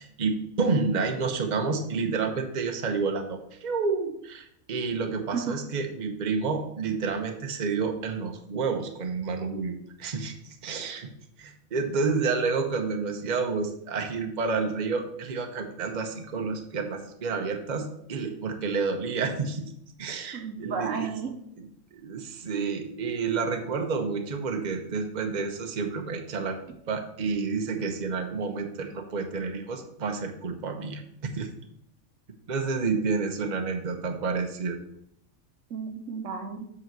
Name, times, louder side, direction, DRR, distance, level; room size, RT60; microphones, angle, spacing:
voice 1, 0.0-10.3 10.6-11.1 11.4-19.7 20.0-21.1 21.6-31.0 31.3-31.5 32.5-34.8, right 4 dB, 35° right, 4 dB, 0.9 m, -29 dB
voice 2, 20.3-21.3 35.7-36.7, right 5 dB, 60° right, 5 dB, 1.3 m, -33 dB
8.0 x 4.1 x 6.0 m, 0.73 s
omnidirectional pair, 1.5 m